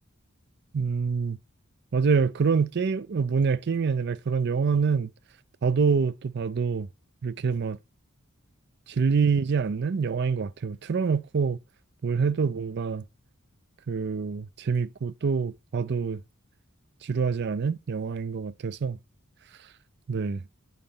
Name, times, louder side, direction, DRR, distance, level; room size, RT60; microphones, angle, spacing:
voice 1, 0.7-1.4 1.9-5.1 5.6-6.9 7.2-7.8 8.9-11.6 12.0-13.0 13.9-16.2 17.0-19.0 20.1-20.4, right 5 dB, 50° right, 0.4 m, -26 dB
8.8 x 3.9 x 5.5 m
head